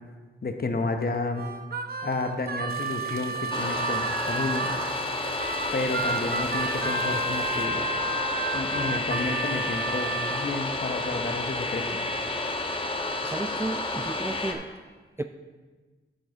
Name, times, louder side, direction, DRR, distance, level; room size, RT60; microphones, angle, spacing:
voice 1, 0.4-1.4 2.0-4.7 5.7-7.9 8.5-12.0, left 3 dB, 45° left, 6 dB, 1.0 m, -31 dB
Harmonica, 1.3-4.8 5.4-10.5, right 4 dB, 45° right, 0.8 m, -32 dB
sound 1, 2.7-7.7, right 8 dB, 80° right, 0.5 m, -44 dB
sound 2, 3.5-14.5, left 2 dB, 25° left, 1.1 m, -30 dB
voice 2, 13.2-14.7 15.2-15.3, right 2 dB, 10° right, 7 dB, 0.4 m, -33 dB
9.0 x 7.1 x 4.0 m, 1.4 s
cardioid pair, 45°, 21 cm